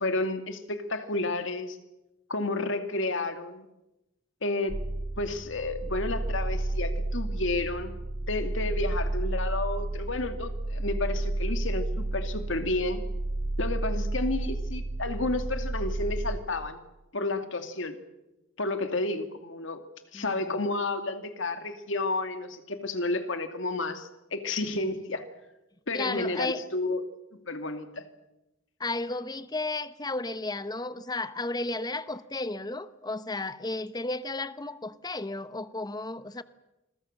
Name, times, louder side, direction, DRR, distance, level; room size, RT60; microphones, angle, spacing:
voice 1, 0.0-1.8 2.3-3.7 4.4-4.8 5.2-13.0 13.6-16.8 17.1-18.0 18.6-19.8 20.1-25.3 25.9-27.0 27.5-28.1, left 2 dB, 70° left, 2.4 m, -31 dB
sound 1, 4.7-16.4, right 2 dB, 65° right, 3.7 m, -31 dB
voice 2, 20.1-20.5 25.9-26.6 28.8-36.4, left 2 dB, 20° left, 0.9 m, -33 dB
27.5 x 22.0 x 6.6 m
head